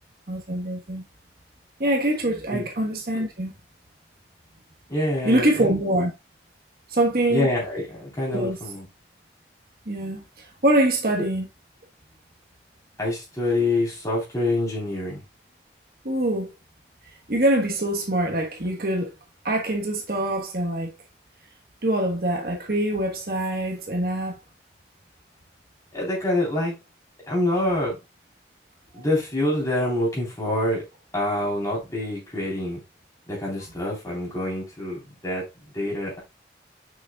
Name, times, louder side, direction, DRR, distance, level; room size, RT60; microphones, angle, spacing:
voice 1, 0.3-1.0 1.8-3.5 5.2-6.1 6.9-7.5 8.3-8.6 9.9-11.5 16.0-16.5 17.3-19.1 19.4-20.9 21.8-24.4, right 1 dB, 55° right, 1.3 m, -24 dB
voice 2, 4.9-5.7 7.3-8.9 13.0-15.2 25.9-26.8 27.3-28.0 28.9-30.8 31.1-32.8 33.3-35.4 35.7-36.2, left 1 dB, 20° left, 3.7 m, -26 dB
6.5 x 6.3 x 2.4 m
head